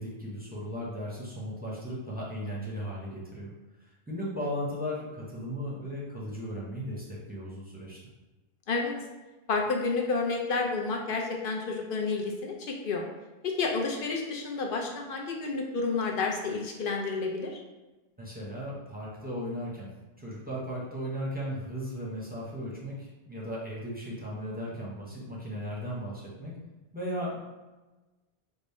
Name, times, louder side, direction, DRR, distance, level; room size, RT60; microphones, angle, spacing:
voice 1, 0.0-3.5 3.8-8.0 18.2-19.9 20.2-26.6 26.9-27.4, equal, 10° right, -6 dB, 0.6 m, -36 dB
voice 2, 9.5-13.0 13.4-17.6, left 4 dB, 60° left, 1 dB, 0.7 m, -30 dB
3.5 x 2.0 x 4.1 m, 1.1 s
omnidirectional pair, 1.1 m